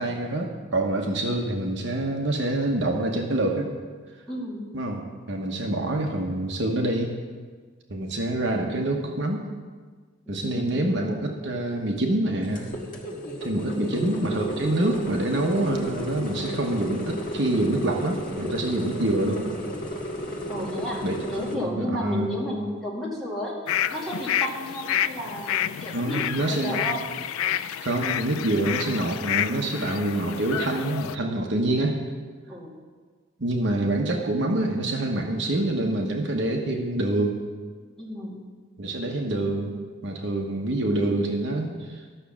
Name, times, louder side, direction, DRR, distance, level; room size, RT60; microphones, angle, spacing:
voice 1, 0.0-3.7 4.7-7.1 7.9-9.4 10.3-12.7 13.4-19.5 21.0-21.1 21.5-22.3 25.9-26.8 27.8-32.0 33.4-37.4 38.8-39.7 40.0-42.0, right 1 dB, 60° right, 1 dB, 1.1 m, -26 dB
voice 2, 4.3-4.7 10.3-11.0 13.6-14.1 20.5-21.0 21.3-23.6 23.9-27.1 32.5-32.8 38.0-38.4, equal, ahead, -6 dB, 2.0 m, -32 dB
sound 1, 12.4-21.5, equal, 40° left, 1.5 m, -33 dB
sound 2, 23.7-31.2, left 10 dB, 80° left, 0.3 m, -29 dB
12.5 x 6.2 x 7.1 m, 1.5 s
head